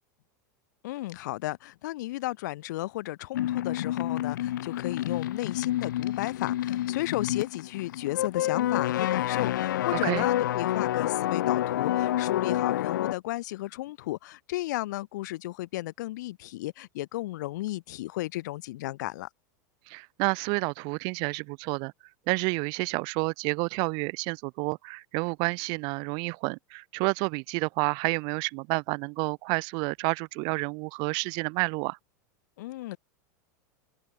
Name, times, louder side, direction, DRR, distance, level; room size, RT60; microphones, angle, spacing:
voice 1, 0.8-19.3 32.6-33.0, left 17 dB, 70° left, 4.1 m, -34 dB
sound 1, 3.3-13.1, left 13 dB, 90° left, 1.2 m, -28 dB
voice 2, 19.9-21.9 22.3-32.0, right 33 dB, 50° right, 1.0 m, -29 dB
supercardioid pair, 145°, 10 cm